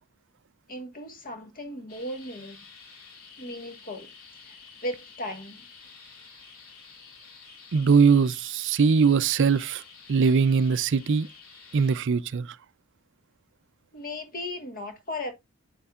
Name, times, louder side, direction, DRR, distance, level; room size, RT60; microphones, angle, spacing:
voice 1, 0.7-2.6 3.4-4.1 4.4-5.7 13.9-15.3, left 1 dB, 40° left, 1.5 m, -36 dB
sound 1, 1.9-12.0, left 5 dB, 70° left, 3.6 m, -50 dB
voice 2, 7.7-9.8 10.1-11.3 11.7-12.6, right 5 dB, 55° right, 0.4 m, -21 dB
8.7 x 6.9 x 2.4 m
head